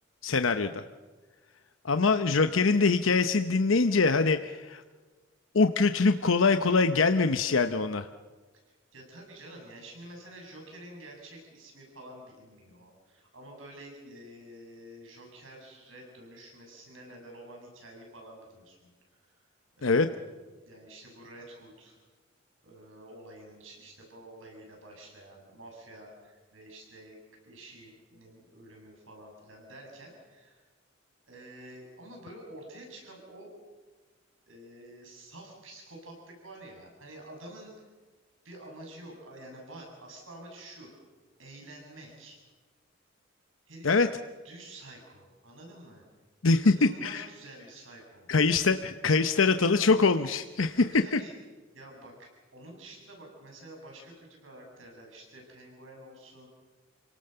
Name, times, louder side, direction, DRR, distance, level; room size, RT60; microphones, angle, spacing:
voice 1, 0.2-0.8 1.8-4.8 5.5-8.1 19.8-20.1 43.8-44.1 46.4-47.2 48.3-50.8 51.1-51.2, left 4 dB, 85° left, 9 dB, 0.9 m, -23 dB
voice 2, 8.9-18.9 19.3-19.4 19.8-20.3 20.7-22.0 22.6-27.2 27.4-30.6 31.3-33.6 34.4-37.7 38.4-40.9 41.4-42.4 43.7-44.1 44.4-46.0 46.5-48.3 50.8-51.4 51.7-56.5, right 1 dB, 80° right, 0 dB, 7.5 m, -49 dB
30.0 x 18.5 x 6.8 m, 1.3 s
head